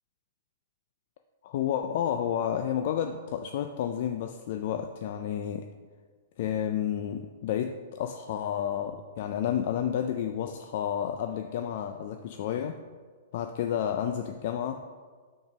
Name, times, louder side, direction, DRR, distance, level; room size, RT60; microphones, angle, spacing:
voice 1, 1.4-5.7 6.4-12.8 13.3-14.8, left 9 dB, 55° left, 6 dB, 0.4 m, -31 dB
5.9 x 4.5 x 6.0 m, 1.5 s
hypercardioid pair, 150°, 0 cm